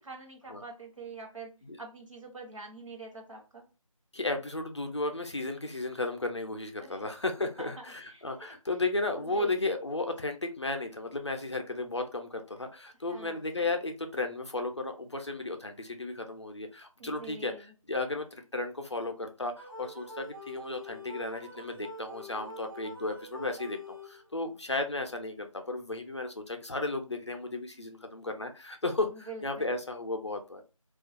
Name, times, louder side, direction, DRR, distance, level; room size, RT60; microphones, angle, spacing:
voice 1, 0.0-3.7 6.8-7.1 7.4-8.6 9.2-9.6 13.1-13.4 17.0-17.7 29.1-29.8, right 3 dB, 60° right, 1 dB, 0.9 m, -46 dB
voice 2, 4.1-17.5 17.9-30.6, left 2 dB, 50° left, 5 dB, 0.4 m, -34 dB
sound 1, 19.6-24.5, equal, 35° right, 0.4 m, -46 dB
2.3 x 2.2 x 2.5 m, 0.32 s
figure-of-eight pair, 175°, 18 cm